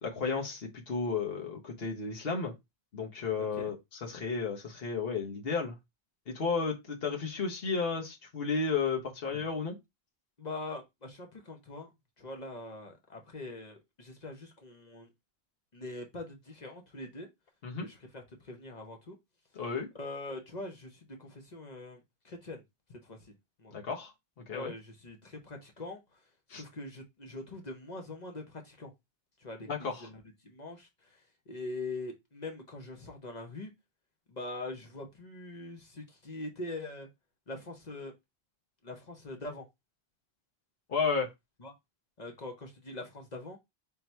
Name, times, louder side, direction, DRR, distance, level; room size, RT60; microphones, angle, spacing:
voice 1, 0.0-2.6 2.9-5.8 6.3-9.8 17.6-17.9 19.5-19.9 23.7-24.1 24.5-24.7 26.5-26.6 29.7-30.1 40.9-41.3, left 5 dB, 65° left, 1.3 m, -33 dB
voice 2, 10.4-11.9 12.2-15.1 15.7-17.3 17.8-19.2 19.9-22.6 23.0-23.2 23.6-23.7 24.5-26.2 26.5-28.9 29.4-31.2 31.5-33.7 34.3-37.1 37.5-38.1 38.8-39.7 41.6-41.7 42.2-43.6, left 2 dB, 45° left, 1.0 m, -43 dB
3.8 x 2.8 x 4.4 m
omnidirectional pair, 1.1 m